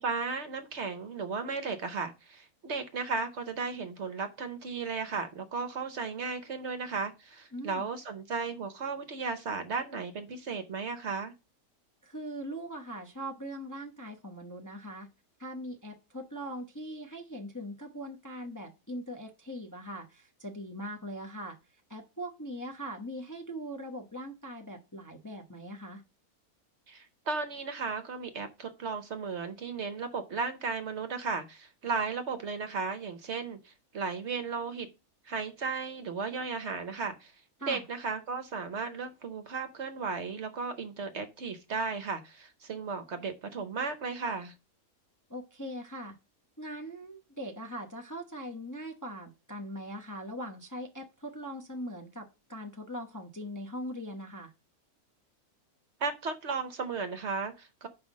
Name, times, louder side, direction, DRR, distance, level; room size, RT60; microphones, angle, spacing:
voice 1, 0.0-11.3 26.9-34.9 35.2-37.3 37.6-44.5 56.0-57.9, right 4 dB, 55° right, 0.9 m, -35 dB
voice 2, 7.5-7.9 12.0-15.1 15.4-21.6 21.9-26.0 37.6-37.8 45.3-46.2 46.6-54.5, equal, 15° left, 0.7 m, -41 dB
5.6 x 4.8 x 6.2 m
omnidirectional pair, 1.6 m